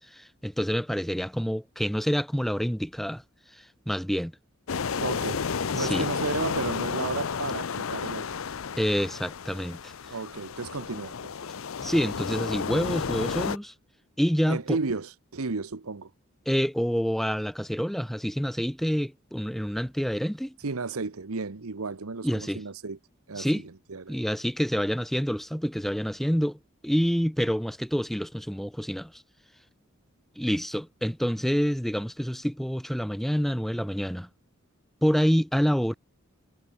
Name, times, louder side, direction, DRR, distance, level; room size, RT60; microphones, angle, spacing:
voice 1, 0.1-3.2 3.5-4.3 5.8-6.1 8.8-9.9 11.8-13.7 14.2-14.8 16.5-20.6 22.2-22.6 23.4-23.6 24.1-29.2 30.4-34.3 35.0-35.9, equal, ahead, 0.9 m, -27 dB
sound 1, 4.7-13.6, left 6 dB, 70° left, 0.6 m, -32 dB
voice 2, 5.0-5.4 5.7-8.4 10.1-11.5 14.5-16.1 20.6-23.0 23.3-23.5 23.9-24.2, right 4 dB, 90° right, 1.0 m, -33 dB
head